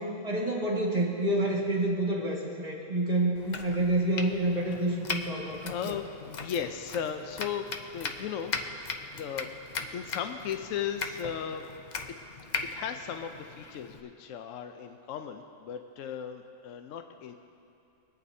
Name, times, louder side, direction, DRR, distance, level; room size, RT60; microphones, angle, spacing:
voice 1, 0.0-6.0, right 1 dB, 30° right, -3 dB, 1.8 m, -28 dB
Domestic sounds home sounds, 3.3-14.0, left 4 dB, 50° left, 0.5 m, -39 dB
voice 2, 5.6-8.5 9.1-9.5 9.9-11.7 12.6-17.3, left 8 dB, 70° left, 6 dB, 1.0 m, -36 dB
23.0 x 9.3 x 2.7 m, 2.7 s
omnidirectional pair, 1.4 m